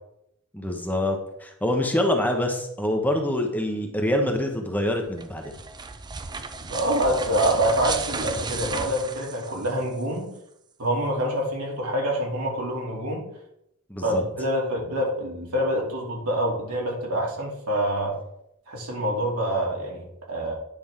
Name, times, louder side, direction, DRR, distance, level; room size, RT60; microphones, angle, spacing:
voice 1, 0.5-5.5 13.9-14.2, left 1 dB, 10° left, 3 dB, 0.9 m, -25 dB
sound 1, 5.1-10.0, right 4 dB, 20° right, 0.4 m, -34 dB
voice 2, 6.7-10.3 10.8-13.2 14.0-18.2 18.7-20.5, right 1 dB, 85° right, -2 dB, 2.8 m, -26 dB
9.9 x 5.9 x 3.7 m, 0.78 s
head